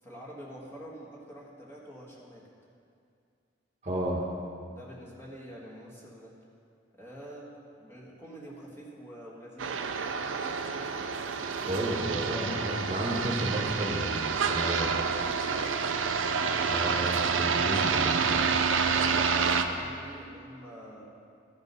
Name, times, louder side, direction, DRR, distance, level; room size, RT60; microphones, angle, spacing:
voice 1, 0.0-2.5 4.7-6.3 6.9-7.5 7.8-10.0 15.4-17.0 18.8-21.0, equal, 15° left, -5 dB, 1.6 m, -46 dB
voice 2, 3.8-4.3 11.6-14.9 16.7-18.5, right 1 dB, 35° right, -2 dB, 1.1 m, -32 dB
sound 1, 9.6-19.6, right 5 dB, 90° right, 0.6 m, -28 dB
14.0 x 5.2 x 5.5 m, 2.4 s
head